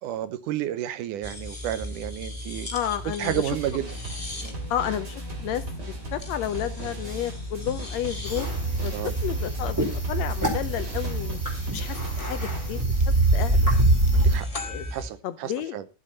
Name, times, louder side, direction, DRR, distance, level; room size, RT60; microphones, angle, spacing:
voice 1, 0.0-2.7 3.2-4.0 4.4-4.6 8.9-9.1 14.1-14.5 14.9-15.9, right 12 dB, 80° right, 2.3 m, -31 dB
sound 1, 1.2-15.1, left 1 dB, 15° left, 1.5 m, -37 dB
voice 2, 2.7-3.4 4.7-8.5 8.8-11.4 11.7-13.0 13.3-13.7 14.6-14.8 15.2-15.8, left 10 dB, 75° left, 1.7 m, -31 dB
sound 2, 2.9-12.8, right 2 dB, 30° right, 3.3 m, -39 dB
sound 3, 8.2-14.4, right 2 dB, 5° right, 3.7 m, -24 dB
13.0 x 7.5 x 5.6 m
omnidirectional pair, 3.7 m